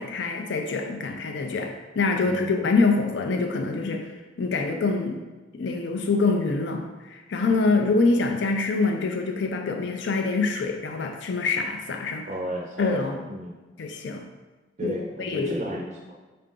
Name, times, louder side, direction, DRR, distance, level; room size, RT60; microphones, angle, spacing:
voice 1, 0.0-4.1 4.4-5.2 5.5-12.3 12.8-13.2 13.8-14.3 14.8-14.9 15.2-15.5, left 3 dB, 65° left, 4 dB, 0.4 m, -25 dB
voice 2, 2.2-2.7 7.6-7.7 12.3-13.6 14.8-16.1, equal, 40° right, -1 dB, 0.5 m, -33 dB
5.6 x 2.5 x 3.7 m, 1.2 s
head